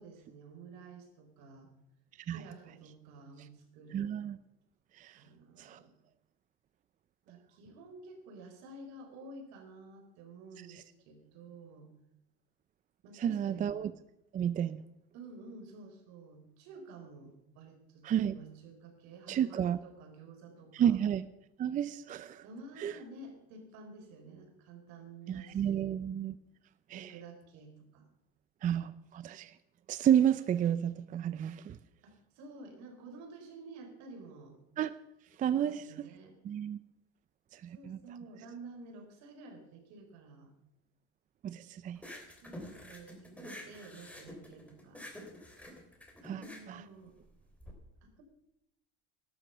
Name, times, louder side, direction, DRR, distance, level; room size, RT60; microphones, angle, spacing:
voice 1, 0.0-1.7 2.3-4.2 5.1-5.9 7.3-11.9 13.0-13.7 15.1-21.0 22.4-26.0 26.9-28.1 32.0-34.6 35.5-36.4 37.7-40.5 42.3-45.0 46.3-47.2 48.0-48.2, right 3 dB, 65° right, 5 dB, 4.1 m, -51 dB
voice 2, 3.9-4.4 5.0-5.2 5.6-5.8 10.7-10.8 13.1-13.9 14.3-14.8 18.0-18.3 19.3-19.8 20.7-21.2 21.6-22.4 22.8-23.0 25.3-26.3 26.9-27.2 28.6-29.5 29.9-31.8 34.8-35.0 35.4-36.1 36.4-36.8 37.5-38.0 41.4-42.2 46.2-46.8, right 10 dB, 25° right, 14 dB, 0.5 m, -31 dB
sound 1, 41.9-47.7, left 1 dB, 5° left, 3.1 m, -48 dB
12.5 x 12.5 x 6.7 m, 0.84 s
cardioid pair, 135°, 29 cm